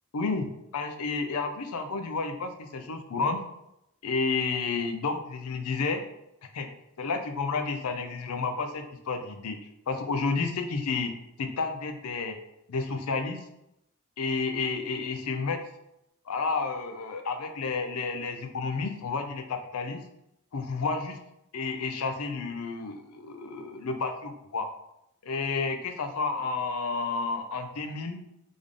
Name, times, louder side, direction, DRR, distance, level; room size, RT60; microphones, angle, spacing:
voice 1, 0.1-3.4 4.0-6.0 6.5-6.7 7.0-9.6 9.9-11.1 11.4-12.4 12.7-13.4 14.2-15.6 16.3-20.0 20.5-21.2 21.5-24.7 25.2-28.2, left 4 dB, 85° left, 6 dB, 0.5 m, -31 dB
3.6 x 3.5 x 3.6 m, 0.82 s
head